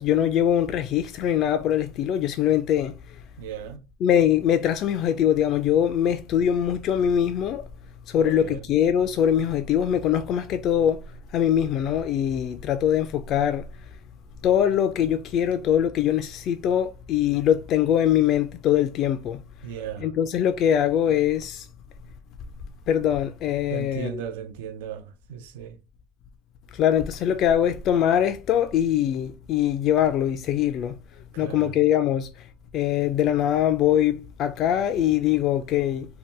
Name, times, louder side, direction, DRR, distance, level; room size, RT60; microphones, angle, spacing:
voice 1, 0.0-2.9 4.0-7.7 8.1-11.0 11.3-13.7 14.4-19.4 20.0-21.7 22.9-24.2 26.7-31.0 31.4-32.3 32.7-36.1, left 10 dB, 50° left, 0.3 m, -22 dB
voice 2, 3.4-3.8 8.2-8.6 19.6-20.1 23.7-25.8 31.3-31.7, right 8 dB, 80° right, 0.5 m, -36 dB
2.8 x 2.2 x 3.2 m
supercardioid pair, 105°, 0 cm